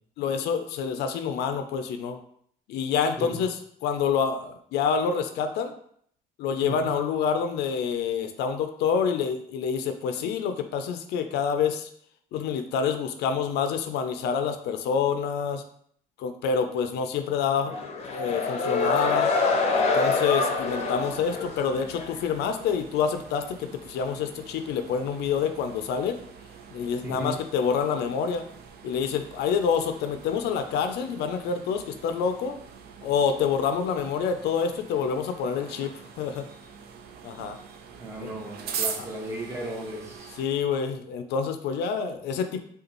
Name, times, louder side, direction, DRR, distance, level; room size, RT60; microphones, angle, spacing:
voice 1, 0.2-2.2 2.7-3.5 3.8-5.7 6.4-11.9 12.3-15.6 16.2-17.7 18.1-19.3 19.7-26.2 26.7-28.5 28.8-32.5 33.0-35.9 36.2-36.4 37.2-37.6 38.2-38.3 40.4-42.6, left 6 dB, 80° left, 7 dB, 0.5 m, -27 dB
voice 2, 6.6-6.9 27.0-27.4 38.0-40.3, right 1 dB, 15° right, -1 dB, 1.0 m, -35 dB
sound 1, 17.7-22.2, left 3 dB, 40° left, 0.6 m, -26 dB
sound 2, 20.6-40.4, right 6 dB, 65° right, 0.5 m, -43 dB
5.1 x 2.3 x 3.0 m, 0.65 s
cardioid pair, 110°, 17 cm